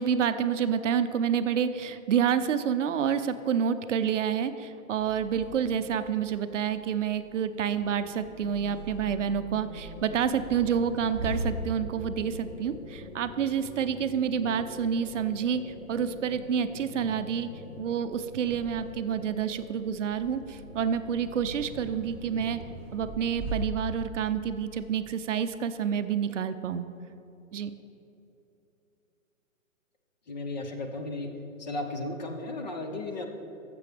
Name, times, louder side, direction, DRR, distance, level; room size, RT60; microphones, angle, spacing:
voice 1, 0.0-17.5 17.8-22.6 22.9-26.9 27.5-27.8, right 8 dB, 65° right, 10 dB, 0.6 m, -28 dB
sound 1, 5.0-23.5, right 2 dB, 5° right, 1.0 m, -42 dB
sound 2, 7.2-22.8, left 4 dB, 65° left, 0.9 m, -48 dB
voice 2, 30.3-31.3 31.6-33.3, left 2 dB, 30° left, 4 dB, 0.6 m, -35 dB
14.0 x 6.9 x 3.4 m, 2.9 s
hypercardioid pair, 165°, 41 cm